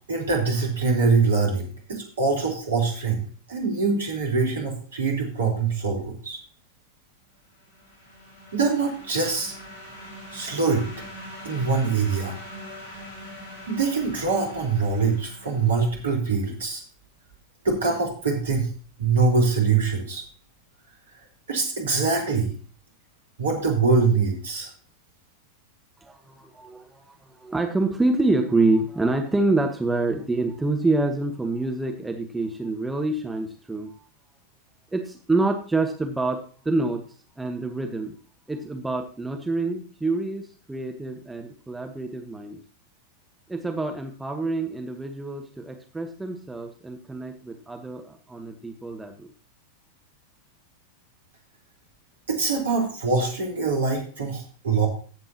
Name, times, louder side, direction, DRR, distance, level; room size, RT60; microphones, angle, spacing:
voice 1, 0.0-3.2 3.5-6.4 8.5-9.5 10.3-10.9 11.4-12.4 13.7-16.8 17.6-18.7 19.0-20.2 21.5-22.5 23.4-24.7 52.3-54.9, right 4 dB, 65° right, 1 dB, 4.1 m, -24 dB
sound 1, 7.6-16.2, equal, 45° left, 5.1 m, -42 dB
voice 2, 26.0-27.0 27.4-33.9 34.9-37.0 37.4-38.1 38.5-42.6 43.5-49.3, right 2 dB, 10° right, 4 dB, 1.2 m, -27 dB
16.0 x 7.7 x 2.9 m, 0.41 s
figure-of-eight pair, 90°, 0 cm